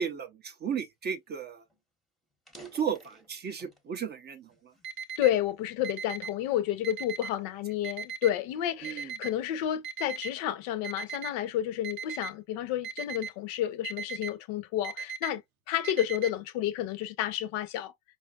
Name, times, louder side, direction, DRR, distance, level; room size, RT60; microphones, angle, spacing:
voice 1, 0.0-1.6 2.7-4.5 8.8-9.1, right 7 dB, 25° right, 0.4 m, -34 dB
sound 1, 1.3-1.4 1.7-1.8 2.3-3.9 4.5-5.7 6.3-6.6 7.2-9.3, right 3 dB, ahead, 0.7 m, -54 dB
Alarm, 4.8-5.3 5.8-6.3 6.8-7.3 7.8-8.3 8.8-9.3 9.8-10.3 10.8-11.3 11.8-12.3 12.8-13.3 13.8-14.3 14.8-15.3 15.8-16.3, right 7 dB, 80° right, 0.6 m, -37 dB
voice 2, 5.2-17.9, left 12 dB, 55° left, 0.6 m, -31 dB
5.0 x 2.3 x 2.2 m
figure-of-eight pair, 65°, 41 cm